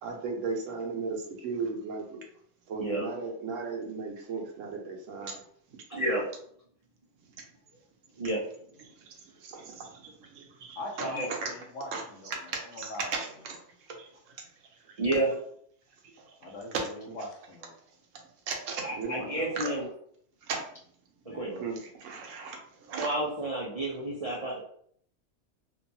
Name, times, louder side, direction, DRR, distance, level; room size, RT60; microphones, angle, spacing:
voice 1, 0.0-2.2 2.7-5.3 9.5-9.9 10.4-11.1 11.4-11.5 11.9-13.6 16.7-17.2 18.5-19.2 19.6-19.7 20.5-20.6 21.6-22.6 22.9-23.2, right 4 dB, 90° right, 2 dB, 1.0 m, -35 dB
voice 2, 5.9-6.3 8.2-8.4 11.1-11.3 15.0-15.3 18.8-19.9 21.3-21.7 22.9-24.6, right 1 dB, 60° right, -5 dB, 0.3 m, -30 dB
voice 3, 10.8-13.3 16.4-17.7 19.2-19.5 21.2-21.6, left 1 dB, 75° left, 1 dB, 1.0 m, -41 dB
2.7 x 2.2 x 2.6 m, 0.63 s
omnidirectional pair, 1.3 m